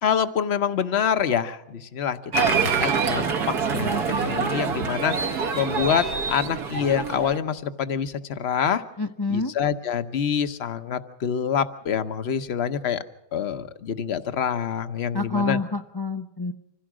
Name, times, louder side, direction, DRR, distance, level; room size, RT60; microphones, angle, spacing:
voice 1, 0.0-8.8 9.3-13.0 13.3-15.6, left 8 dB, 45° left, 10 dB, 1.0 m, -26 dB
Applause, 2.3-7.4, right 5 dB, 65° right, 1.7 m, -25 dB
voice 2, 9.0-9.5 15.1-16.5, left 3 dB, 30° left, 7 dB, 0.4 m, -27 dB
26.0 x 16.0 x 6.2 m, 0.90 s
omnidirectional pair, 1.8 m